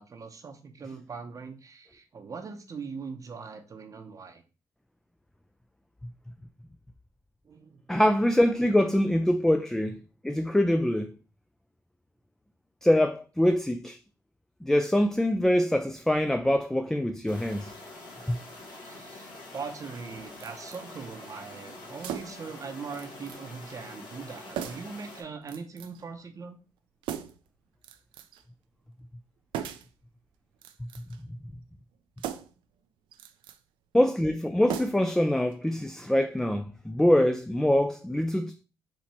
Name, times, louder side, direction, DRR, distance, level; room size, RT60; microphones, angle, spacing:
voice 1, 0.0-4.4 7.4-7.8 18.8-26.6, right 5 dB, 40° right, 0.7 m, -41 dB
voice 2, 7.9-11.1 12.8-14.0 14.6-17.7 18.3-18.4 33.9-38.5, left 1 dB, 5° left, 0.3 m, -24 dB
sound 1, 17.3-25.2, left 2 dB, 70° left, 2.0 m, -46 dB
sound 2, 20.4-20.8 22.0-22.5 22.9-23.4 23.7-23.8 24.6-25.0 25.5-26.0 27.0-27.5 27.8-28.4 29.5-30.0 30.5-31.2 32.2-32.6 33.1-33.6 34.7-35.2 35.5-35.6, right 9 dB, 80° right, 0.5 m, -38 dB
4.4 x 2.9 x 4.3 m
supercardioid pair, 75°, 8 cm